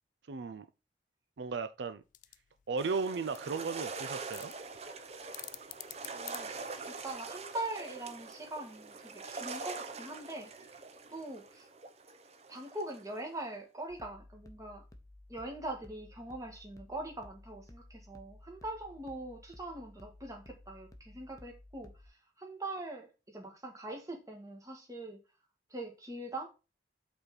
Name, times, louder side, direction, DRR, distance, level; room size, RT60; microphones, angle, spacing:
voice 1, 0.3-0.7 1.4-2.0 2.7-4.5, right 4 dB, 80° right, 0.5 m, -35 dB
sound 1, 2.0-7.2, left 15 dB, 45° left, 0.4 m, -50 dB
sound 2, 2.8-13.3, right 4 dB, 35° right, 0.7 m, -44 dB
voice 2, 6.1-6.5 6.9-10.5 11.1-11.7 12.5-14.8 15.3-25.2 25.7-26.5, right 1 dB, 20° right, 1.8 m, -42 dB
sound 3, 13.9-22.1, left 1 dB, 20° left, 0.9 m, -55 dB
5.5 x 4.2 x 5.9 m
head